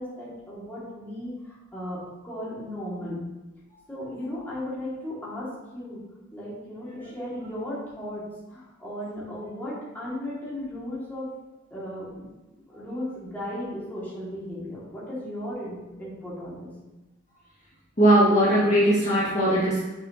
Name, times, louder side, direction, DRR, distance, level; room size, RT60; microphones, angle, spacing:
voice 1, 0.0-3.2 3.9-6.0 6.3-8.2 8.5-11.3 11.7-12.2 12.7-16.7, left 1 dB, 10° left, -8 dB, 2.2 m, -36 dB
voice 2, 18.0-19.8, right 1 dB, 35° left, -8 dB, 1.9 m, -20 dB
7.0 x 6.3 x 2.9 m, 1.1 s
head